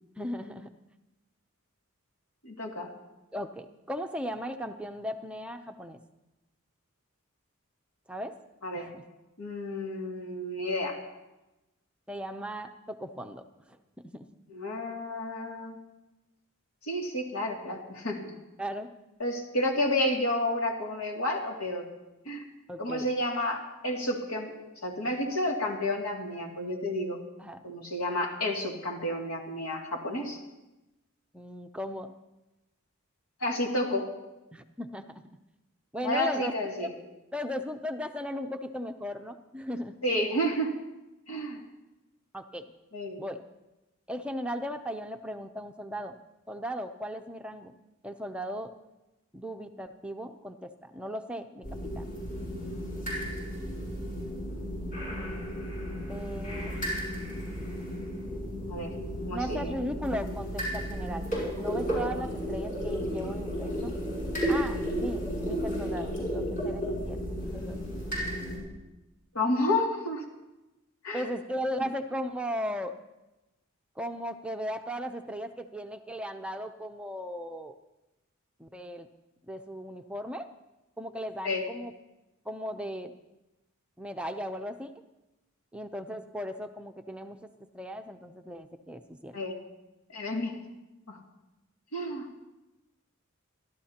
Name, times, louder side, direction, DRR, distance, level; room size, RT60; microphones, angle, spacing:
voice 1, 0.2-0.7 3.3-6.0 8.1-8.4 8.7-9.0 12.1-13.4 13.7-13.8 14.0-14.3 18.6-18.9 22.7-23.1 27.4-27.6 31.3-32.1 34.5-35.1 35.9-36.5 36.8-36.9 37.3-39.9 42.3-42.6 43.2-43.4 44.1-46.2 46.5-47.7 48.0-48.7 49.3-51.7 51.9-52.0 56.1-56.7 59.3-61.3 61.6-64.0 64.5-67.2 67.5-67.8 71.1-72.9 74.0-77.8 78.6-79.1 79.5-80.5 81.0-81.9 82.5-83.1 84.0-84.9 85.7-87.5 87.7-89.4, equal, 5° right, 6 dB, 0.6 m, -37 dB
voice 2, 2.4-2.9 8.6-8.9 9.4-11.0 14.5-15.8 16.8-18.3 19.2-21.8 22.3-22.4 22.8-24.5 24.8-27.2 27.6-30.4 33.4-34.1 36.0-36.9 40.0-40.7 41.3-41.6 42.9-43.2 58.7-58.9 59.2-59.7 69.3-70.2 71.0-71.2 81.4-81.6 89.3-89.6 90.1-90.5 91.1-91.2 91.9-92.3, left 1 dB, 85° left, 0 dB, 2.5 m, -30 dB
sound 1, 51.6-68.6, equal, 40° left, 7.1 m, -33 dB
29.5 x 12.5 x 2.9 m, 1.0 s
head